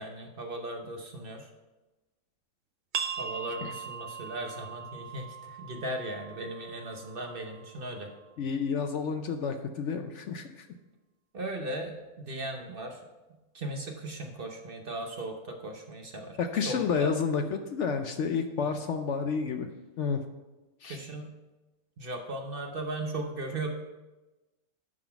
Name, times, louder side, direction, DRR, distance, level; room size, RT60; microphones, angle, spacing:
voice 1, 0.0-1.5 3.2-8.1 11.3-13.0 13.5-16.4 16.7-17.2 18.6-18.7 20.8-21.3 22.0-23.7, right 1 dB, 45° right, 3 dB, 0.9 m, -37 dB
sound 1, 2.9-8.3, right 7 dB, 85° right, 0.4 m, -40 dB
voice 2, 8.4-10.7 16.4-19.7 20.0-20.2 20.8-21.0, left 5 dB, 65° left, 7 dB, 0.8 m, -30 dB
11.0 x 4.0 x 5.7 m, 1.1 s
omnidirectional pair, 1.5 m